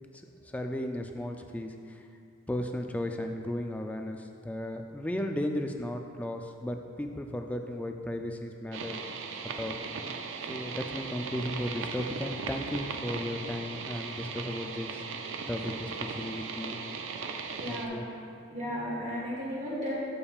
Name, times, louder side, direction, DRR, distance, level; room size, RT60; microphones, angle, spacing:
voice 1, 0.5-2.0 2.5-9.0 9.6-9.8 10.5-15.0 15.5-16.8 17.7-18.0, left 1 dB, 5° left, 4 dB, 0.4 m, -35 dB
sound 1, 8.7-17.9, right 5 dB, 65° right, 0.5 m, -38 dB
voice 2, 17.6-18.0 18.5-19.9, equal, 35° right, -6 dB, 1.5 m, -34 dB
14.0 x 5.3 x 2.4 m, 2.4 s
head